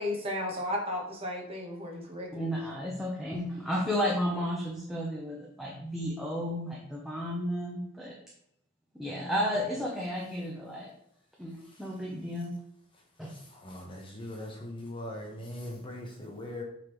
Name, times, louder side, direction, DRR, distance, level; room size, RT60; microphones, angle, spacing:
voice 1, 0.0-2.5, left 1 dB, 25° right, -1 dB, 1.3 m, -34 dB
voice 2, 2.3-8.2 8.9-10.9 11.4-12.5 13.2-13.3, equal, ahead, -4 dB, 0.8 m, -33 dB
voice 3, 13.5-16.6, left 1 dB, 25° left, 0 dB, 1.0 m, -40 dB
8.2 x 3.8 x 3.1 m, 0.75 s
head